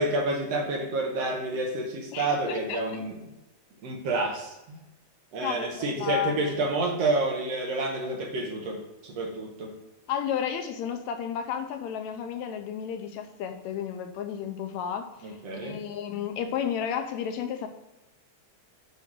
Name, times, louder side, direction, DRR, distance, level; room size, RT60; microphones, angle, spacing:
voice 1, 0.0-3.2 3.8-4.8 5.3-9.7 15.2-15.8, right 2 dB, 65° right, 1 dB, 2.1 m, -29 dB
voice 2, 2.1-2.8 5.4-6.4 10.1-15.4 15.6-17.7, left 8 dB, 75° left, 6 dB, 1.9 m, -32 dB
8.0 x 3.4 x 6.1 m, 0.97 s
omnidirectional pair, 3.4 m